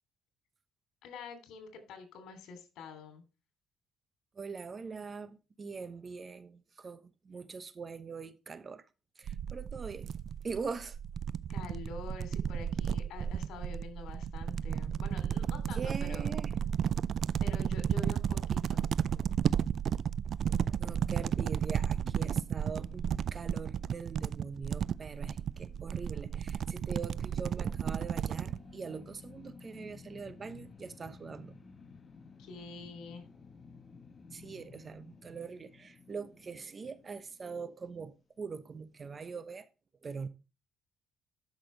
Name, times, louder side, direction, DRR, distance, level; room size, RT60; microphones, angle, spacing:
voice 1, 1.0-3.2 11.5-16.3 17.4-18.8 32.4-33.2, left 4 dB, 80° left, 3.1 m, -46 dB
voice 2, 4.4-8.8 9.2-10.1 10.4-11.0 15.7-16.5 20.8-31.6 34.3-39.7 40.0-40.3, right 5 dB, 35° right, 1.0 m, -42 dB
sound 1, 9.3-28.6, right 8 dB, 55° right, 0.4 m, -33 dB
sound 2, 20.8-38.0, left 4 dB, 35° left, 1.3 m, -54 dB
12.5 x 6.1 x 3.3 m
cardioid pair, 95°, 0 cm